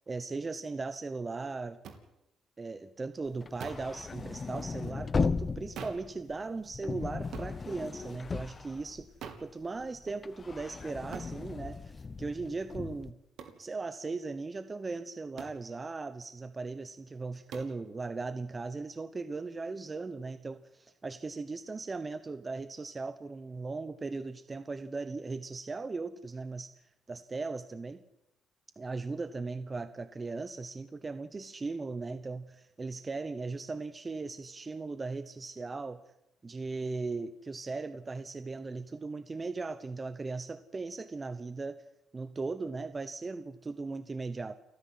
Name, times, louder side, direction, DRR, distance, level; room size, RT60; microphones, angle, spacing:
voice 1, 0.1-1.8 2.6-9.1 9.4-13.2 13.6-26.7 27.1-28.0 28.8-36.0 36.4-41.8 42.1-44.6, right 3 dB, 30° right, 12 dB, 1.0 m, -38 dB
sound 1, 1.8-2.0 3.6-3.9 5.8-6.1 7.3-7.6 9.2-9.5 11.1-11.4 13.4-13.6 15.4-15.6 17.5-17.8, right 7 dB, 75° right, 3.0 m, -44 dB
sound 2, 3.3-9.4 9.8-13.1, left 4 dB, 35° left, 0.9 m, -36 dB
29.5 x 10.5 x 9.6 m, 0.87 s
cardioid pair, 90°, 0 cm